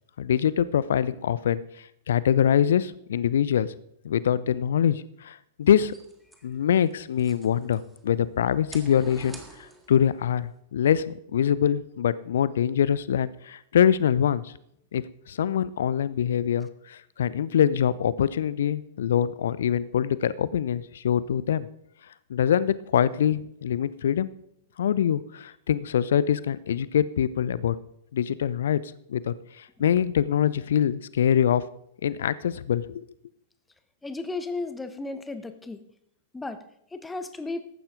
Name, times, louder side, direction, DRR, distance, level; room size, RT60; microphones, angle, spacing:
voice 1, 0.2-1.6 2.1-3.7 4.0-5.9 6.4-9.4 9.9-14.5 14.9-21.7 22.3-24.3 24.8-27.8 28.1-28.8 29.1-31.6 32.0-33.1, left 9 dB, 60° left, 18 dB, 0.6 m, -24 dB
sound 1, 5.8-8.0 8.5-10.1, right 2 dB, 10° right, 1.8 m, -48 dB
voice 2, 34.0-35.8 36.3-36.6 36.9-37.7, left 3 dB, 10° left, 10 dB, 1.0 m, -34 dB
14.5 x 11.5 x 3.8 m, 0.74 s
figure-of-eight pair, 100°, 0 cm